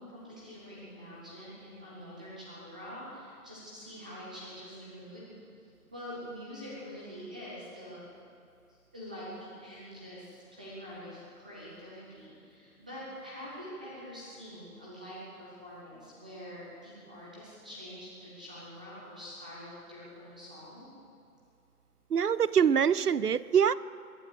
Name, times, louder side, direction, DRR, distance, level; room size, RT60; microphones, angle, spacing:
voice 1, 0.0-5.3 5.9-8.0 8.7-20.9, equal, 5° right, -7 dB, 0.7 m, -45 dB
voice 2, 22.1-23.7, right 7 dB, 85° right, 19 dB, 0.6 m, -24 dB
22.0 x 8.9 x 6.6 m, 2.5 s
figure-of-eight pair, 145°, 46 cm